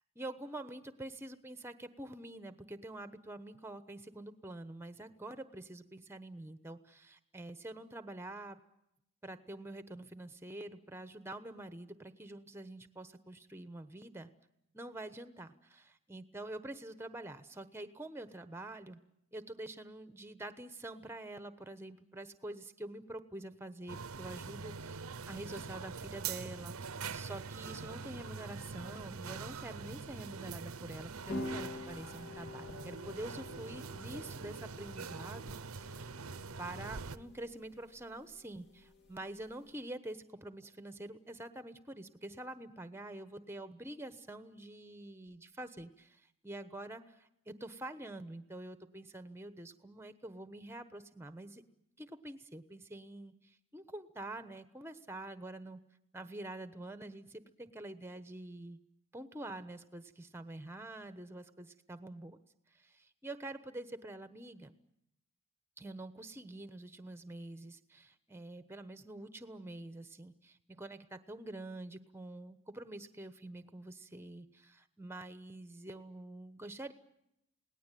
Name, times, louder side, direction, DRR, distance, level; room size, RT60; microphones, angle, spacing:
voice 1, 0.1-8.6 9.2-14.3 14.7-19.0 19.3-36.1 36.6-51.6 52.0-55.8 56.1-58.8 59.1-62.4 62.8-64.7 65.8-76.9, right 1 dB, 10° right, 11 dB, 1.1 m, -46 dB
sound 1, 23.9-37.2, right 5 dB, 85° right, 0.9 m, -44 dB
sound 2, 31.3-39.7, left 1 dB, 50° left, 2.3 m, -48 dB
28.0 x 18.5 x 9.2 m, 0.81 s
head